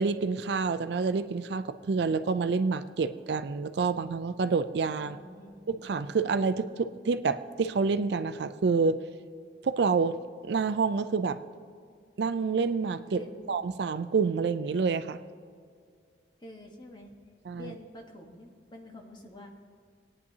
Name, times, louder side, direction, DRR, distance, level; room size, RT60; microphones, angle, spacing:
voice 1, 0.0-5.2 5.7-9.0 9.6-10.2 10.4-11.4 12.2-13.2 13.5-15.2 17.5-17.7, right 4 dB, 70° right, 12 dB, 0.4 m, -28 dB
voice 2, 5.0-5.7 13.1-13.6 16.4-17.1 17.5-19.5, left 1 dB, 25° left, 1 dB, 1.2 m, -47 dB
20.5 x 9.6 x 2.8 m, 2.1 s
head